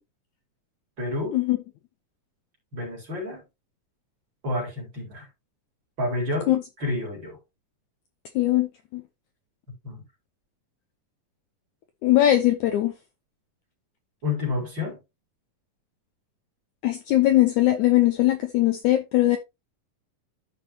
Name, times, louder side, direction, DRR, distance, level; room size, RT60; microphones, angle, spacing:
voice 1, 1.0-1.4 2.7-3.4 4.4-5.3 6.0-7.4 9.8-10.0 14.2-15.0, left 2 dB, 30° right, 4.6 m, -29 dB
voice 2, 8.4-8.7 8.9-9.0 12.0-12.9 16.8-19.4, left 14 dB, 75° left, 1.9 m, -20 dB
13.0 x 5.4 x 2.8 m
omnidirectional pair, 4.1 m